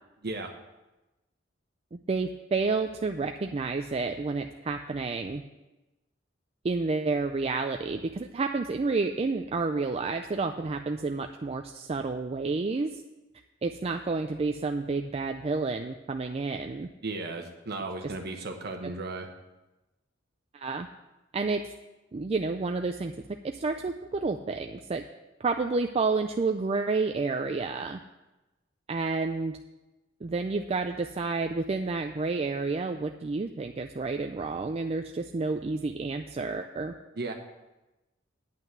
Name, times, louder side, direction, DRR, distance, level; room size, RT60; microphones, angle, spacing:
voice 1, 1.9-5.4 6.6-12.9 13.6-16.9 20.5-20.9 21.3-21.6 22.1-23.1 23.4-25.0 25.4-28.0 28.9-29.6 30.2-36.9, right 3 dB, 30° right, 5 dB, 0.4 m, -30 dB
voice 2, 17.0-19.3 37.2-37.3, right 2 dB, 55° right, 3 dB, 1.0 m, -35 dB
9.2 x 5.7 x 7.9 m, 1.0 s
head